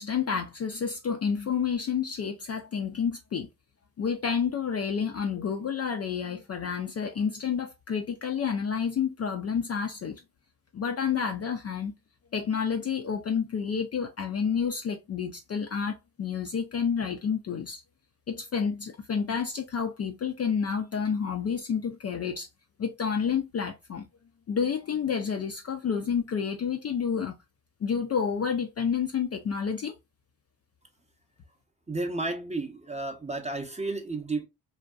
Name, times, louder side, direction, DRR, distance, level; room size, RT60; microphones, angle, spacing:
voice 1, 0.0-3.5 4.0-10.2 10.7-11.9 12.3-17.8 18.3-22.5 22.8-24.1 24.5-27.4 27.8-29.9, left 6 dB, 35° left, 0.4 m, -29 dB
voice 2, 31.9-34.5, right 2 dB, 15° right, 0.6 m, -32 dB
2.6 x 2.2 x 2.3 m
supercardioid pair, 50°, 46 cm